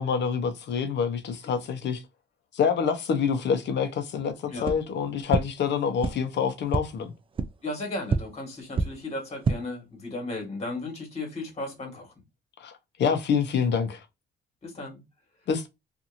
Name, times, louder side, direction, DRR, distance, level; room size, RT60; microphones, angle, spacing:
voice 1, 0.0-2.0 2.5-7.1 12.6-14.0 15.5-15.7, left 6 dB, 65° left, 0.7 m, -27 dB
sound 1, 4.6-4.7 5.3-5.4 6.0-6.1 6.7-6.8 7.3-7.4 8.1-8.2 8.7-8.8 9.3-9.5, right 4 dB, 25° right, 0.3 m, -24 dB
voice 2, 7.6-12.1 14.6-15.0, left 2 dB, 30° left, 1.5 m, -35 dB
2.8 x 2.5 x 2.4 m
cardioid pair, 90°, 20 cm